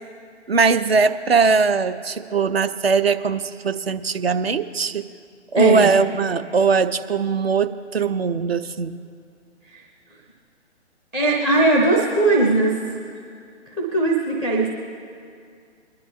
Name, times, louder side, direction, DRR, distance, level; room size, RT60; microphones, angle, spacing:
voice 1, 0.5-5.0 5.5-9.0, right 5 dB, 60° right, 11 dB, 0.7 m, -20 dB
voice 2, 5.5-5.9 9.7-9.8 11.1-12.7 13.7-14.7, right 2 dB, 5° right, 1 dB, 0.5 m, -19 dB
22.0 x 10.5 x 3.2 m, 2.2 s
figure-of-eight pair, 130°, 34 cm